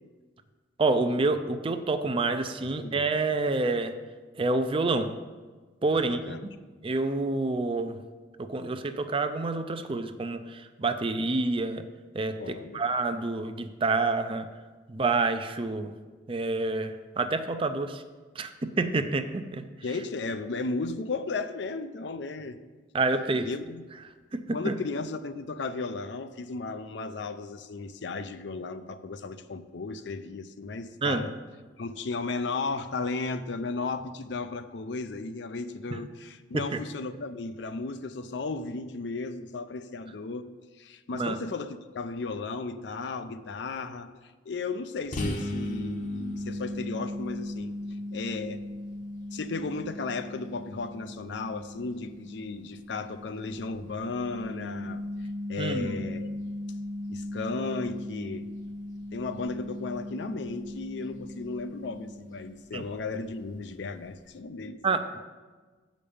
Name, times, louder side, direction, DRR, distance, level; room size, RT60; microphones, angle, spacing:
voice 1, 0.8-3.9 4.4-5.1 5.8-6.4 6.8-8.0 8.4-11.8 12.1-14.5 14.9-15.9 16.3-18.0 18.4-19.6 22.9-23.5 24.3-24.8 31.0-31.3 35.9-36.0 41.1-41.4 55.6-56.0 62.7-62.8 64.8-65.2, right 3 dB, 30° right, 9 dB, 0.5 m, -28 dB
voice 2, 5.9-6.5 12.4-12.8 19.8-22.6 23.5-23.8 24.5-31.3 31.8-40.5 40.8-44.1 44.4-47.7 48.1-48.6 49.3-55.0 55.5-56.3 57.1-58.5 59.1-64.8, left 3 dB, 70° left, 10 dB, 0.5 m, -35 dB
sound 1, 45.1-62.6, left 1 dB, 45° left, 0.9 m, -37 dB
7.6 x 5.2 x 7.0 m, 1.4 s
head